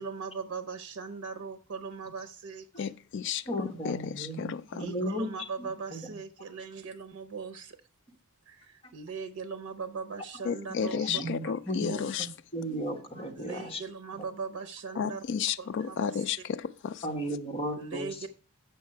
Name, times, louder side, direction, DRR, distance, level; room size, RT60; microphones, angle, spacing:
voice 1, 0.0-2.9 4.8-7.8 8.5-11.6 11.9-12.1 13.3-15.2 15.6-16.2 17.7-18.3, right 5 dB, 90° right, 0.6 m, -40 dB
voice 2, 2.8-4.8 10.5-12.3 15.0-17.0, left 7 dB, 55° left, 0.3 m, -32 dB
voice 3, 3.5-5.3 5.9-6.0 11.0-13.8 17.0-18.3, equal, 30° left, 1.4 m, -35 dB
7.6 x 5.6 x 4.4 m
head